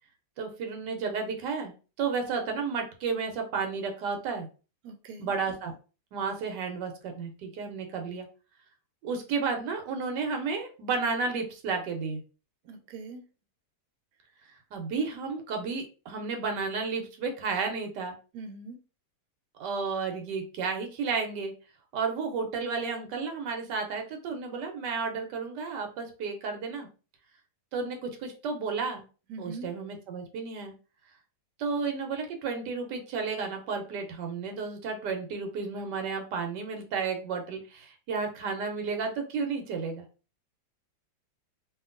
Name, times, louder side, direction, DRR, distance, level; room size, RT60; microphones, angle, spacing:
voice 1, 0.4-4.5 5.2-5.7 6.1-8.3 9.0-12.2 14.7-18.1 19.6-21.5 21.9-26.9 27.7-29.0 29.4-30.7 31.6-40.0, right 5 dB, 90° right, 1.3 m, -32 dB
voice 2, 4.8-5.3 12.6-13.2 18.3-18.8 29.3-29.7, right 3 dB, 70° right, 1.1 m, -42 dB
2.8 x 2.5 x 2.4 m
omnidirectional pair, 1.8 m